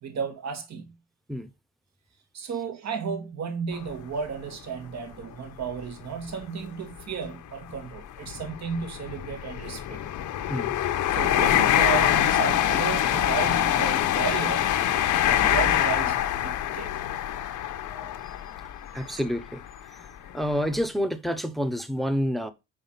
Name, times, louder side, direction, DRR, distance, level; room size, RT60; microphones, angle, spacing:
voice 1, 0.0-1.0 2.3-10.0 11.1-14.8 15.2-16.2 16.4-16.9 18.9-19.1, right 6 dB, 60° right, 1.9 m, -33 dB
sound 1, 3.7-3.9 4.5-4.6 5.7-5.9 6.1-6.3 7.0-19.7 20.3-20.4, left 11 dB, 80° left, 0.9 m, -25 dB
voice 2, 17.9-18.3 18.9-19.6 19.9-20.1 20.3-22.5, equal, ahead, 0.9 m, -29 dB
5.6 x 4.9 x 5.7 m
cardioid pair, 90°, 30 cm